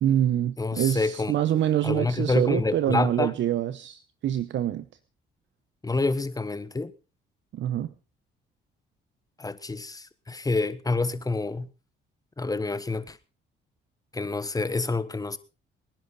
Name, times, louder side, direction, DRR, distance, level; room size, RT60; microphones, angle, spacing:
voice 1, 0.0-4.8 7.5-7.9, right 11 dB, 70° right, 0.9 m, -26 dB
voice 2, 0.6-1.3 1.8-3.3 5.8-6.9 9.4-11.7 12.4-13.2 14.1-15.4, left 3 dB, 20° left, 1.4 m, -28 dB
24.0 x 10.5 x 4.2 m
cardioid pair, 90°, 20 cm